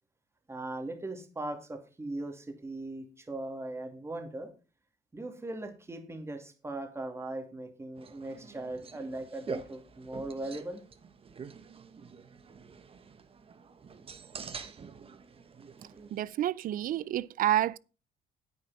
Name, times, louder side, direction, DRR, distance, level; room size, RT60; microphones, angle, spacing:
voice 1, 0.5-4.5 5.1-10.8 15.9-16.1, right 2 dB, 15° right, 2.5 m, -39 dB
sound 1, 8.0-16.3, right 6 dB, 35° right, 1.3 m, -47 dB
voice 2, 16.1-17.8, right 12 dB, 55° right, 0.5 m, -29 dB
9.5 x 9.2 x 4.2 m
cardioid pair, 110°, 17 cm